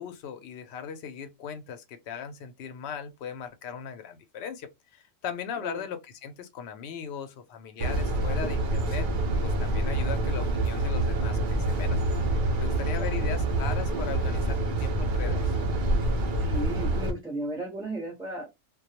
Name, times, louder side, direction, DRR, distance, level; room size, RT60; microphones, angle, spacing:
voice 1, 0.0-9.1 9.4-12.0 12.6-15.6, left 7 dB, 65° left, 0.7 m, -38 dB
sound 1, 7.8-17.1, right 1 dB, 70° right, 0.4 m, -26 dB
voice 2, 16.4-18.5, right 1 dB, 5° right, 0.5 m, -35 dB
2.3 x 2.2 x 2.8 m
omnidirectional pair, 1.5 m